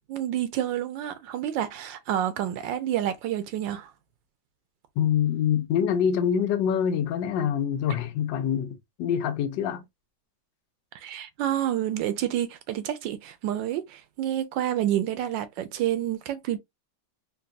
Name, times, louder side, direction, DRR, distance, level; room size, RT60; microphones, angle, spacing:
voice 1, 0.1-3.9 10.9-16.6, right 11 dB, 90° right, 1.3 m, -29 dB
voice 2, 5.0-9.9, left 8 dB, 90° left, 1.3 m, -25 dB
4.0 x 2.3 x 2.5 m
omnidirectional pair, 1.9 m